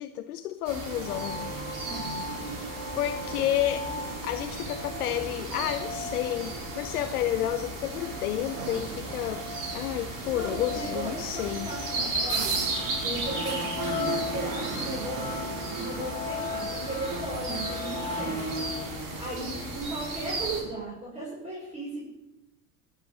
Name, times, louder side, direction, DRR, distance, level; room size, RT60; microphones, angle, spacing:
voice 1, 0.0-1.5 3.0-3.9 4.2-9.5 9.7-11.7, left 12 dB, 80° left, 9 dB, 0.7 m, -30 dB
sound 1, 0.6-20.6, right 2 dB, 45° right, 5.2 m, -35 dB
sound 2, 1.1-18.9, left 5 dB, 15° left, 3.0 m, -39 dB
voice 2, 1.8-2.3 10.3-12.6 13.0-15.4 15.7-18.6 19.2-22.0, right 2 dB, 15° right, -6 dB, 6.4 m, -36 dB
sound 3, 8.4-19.3, right 10 dB, 70° right, 1.3 m, -42 dB
14.0 x 6.8 x 8.1 m, 0.94 s
hypercardioid pair, 70°, 43 cm